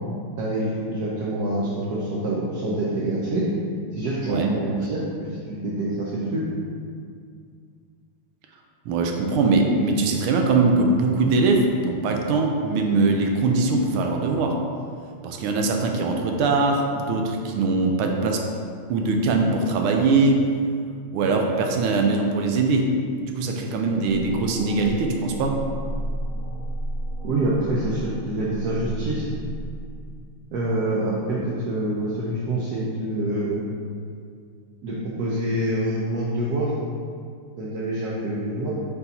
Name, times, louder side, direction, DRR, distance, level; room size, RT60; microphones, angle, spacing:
voice 1, 0.4-3.4 4.0-5.3 5.6-6.4 27.2-29.3 30.5-33.6 34.8-36.7 37.6-38.7, right 1 dB, 60° right, -6 dB, 1.0 m, -26 dB
voice 2, 8.9-14.6 15.2-18.4 18.9-20.5 21.1-22.9 23.2-25.6, right 3 dB, 80° right, 2 dB, 1.5 m, -21 dB
sound 1, 24.1-29.9, equal, ahead, 0.7 m, -33 dB
5.3 x 4.6 x 4.1 m, 2.2 s
omnidirectional pair, 2.4 m